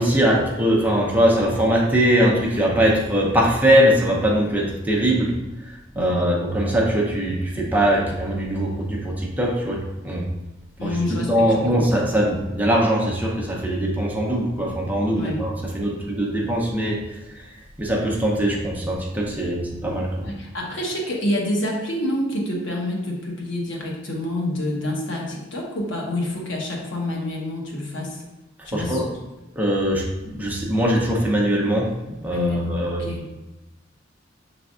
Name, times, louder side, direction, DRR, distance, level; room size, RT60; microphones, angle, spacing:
voice 1, 0.0-10.3 10.8-20.3 28.6-29.1 29.6-33.1, equal, 10° right, -2 dB, 0.7 m, -21 dB
voice 2, 5.9-6.4 10.8-11.7 15.1-15.4 20.2-28.2 28.6-29.1 32.3-33.2, left 1 dB, 70° left, -1 dB, 1.0 m, -27 dB
6.4 x 3.4 x 2.4 m, 1.0 s
head